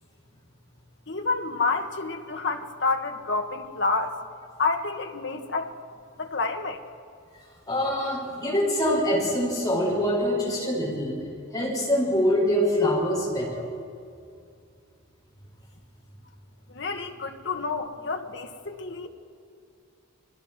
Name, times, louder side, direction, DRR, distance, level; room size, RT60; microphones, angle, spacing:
voice 1, 1.1-4.1 4.6-5.7 6.2-6.8 16.7-19.1, left 3 dB, 55° left, 5 dB, 1.7 m, -29 dB
voice 2, 7.7-11.2 11.5-13.7, equal, 20° left, -3 dB, 7.0 m, -24 dB
30.0 x 23.0 x 6.1 m, 2.4 s
head